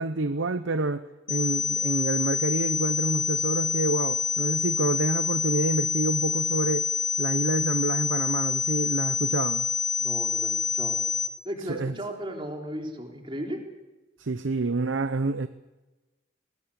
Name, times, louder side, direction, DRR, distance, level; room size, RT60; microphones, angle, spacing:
voice 1, 0.0-6.9 7.2-9.7 11.7-11.9 14.2-15.5, right 2 dB, 80° right, 0.8 m, -28 dB
sound 1, 1.3-11.3, left 6 dB, 40° left, 1.9 m, -27 dB
voice 2, 10.0-11.0 11.4-13.6, equal, 25° right, 3.7 m, -35 dB
21.5 x 19.5 x 8.5 m
head